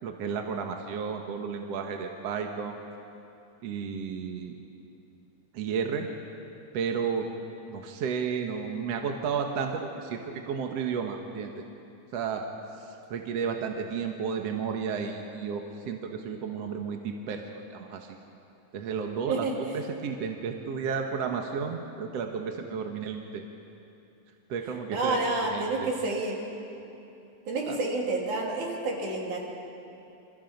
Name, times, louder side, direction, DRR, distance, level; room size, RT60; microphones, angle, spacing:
voice 1, 0.0-2.8 3.6-4.6 5.5-6.1 6.7-7.3 7.7-10.2 10.5-11.6 12.1-12.4 12.8-18.2 18.7-23.4 24.5-25.9 27.7-27.8, right 6 dB, 60° right, 3 dB, 2.2 m, -32 dB
voice 2, 19.3-19.8 24.9-26.4 27.5-29.4, right 2 dB, 75° right, -1 dB, 4.6 m, -29 dB
28.0 x 27.0 x 5.3 m, 2.8 s
omnidirectional pair, 3.5 m